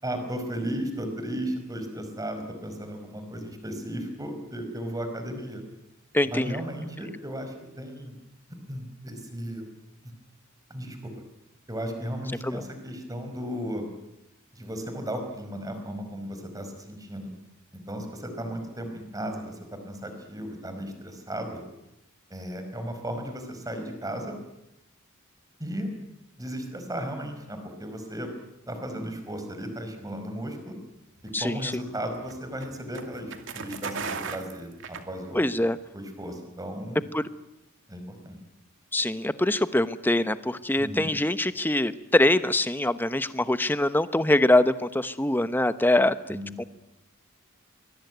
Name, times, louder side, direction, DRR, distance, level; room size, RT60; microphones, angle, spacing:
voice 1, 0.0-5.6 6.2-8.2 8.7-9.6 10.7-11.0 11.7-13.9 14.5-17.3 17.9-19.6 19.9-21.6 22.3-24.3 25.6-25.9 26.4-28.3 28.7-30.7 31.4-35.4 35.9-37.1 37.9-38.4 40.8-41.1 46.3-46.7, equal, 15° right, 6 dB, 5.0 m, -35 dB
voice 2, 6.1-6.6 12.4-12.6 31.3-31.7 35.3-35.8 37.1-37.2 38.9-46.2 46.6-46.7, left 1 dB, 10° left, 12 dB, 0.9 m, -23 dB
sound 1, 31.2-35.6, right 5 dB, 65° right, 2.5 m, -38 dB
24.5 x 21.5 x 9.4 m, 0.88 s
head